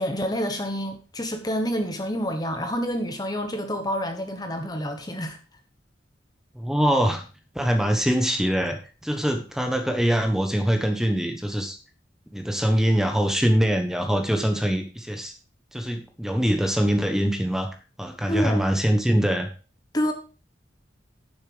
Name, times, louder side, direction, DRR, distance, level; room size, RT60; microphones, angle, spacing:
voice 1, 0.0-5.4 18.3-18.6 19.9-20.1, equal, 20° left, 1.2 m, -28 dB
voice 2, 6.5-7.3 7.5-11.8 12.3-15.3 15.7-17.7 18.0-19.5, equal, 5° right, 1.2 m, -23 dB
10.0 x 7.0 x 5.0 m
head